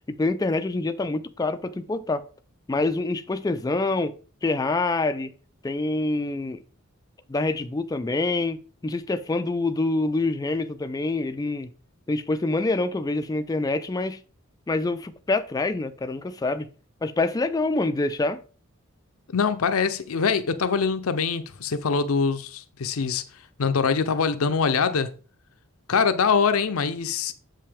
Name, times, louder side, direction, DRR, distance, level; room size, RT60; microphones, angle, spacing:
voice 1, 0.1-2.3 2.7-4.2 4.4-5.3 5.6-6.6 7.3-11.7 12.1-14.2 14.7-16.7 17.0-18.4, left 2 dB, 15° left, 0.3 m, -26 dB
voice 2, 19.3-23.2 23.6-25.1 25.9-27.3, left 5 dB, 85° left, 0.6 m, -23 dB
7.5 x 5.6 x 3.4 m
head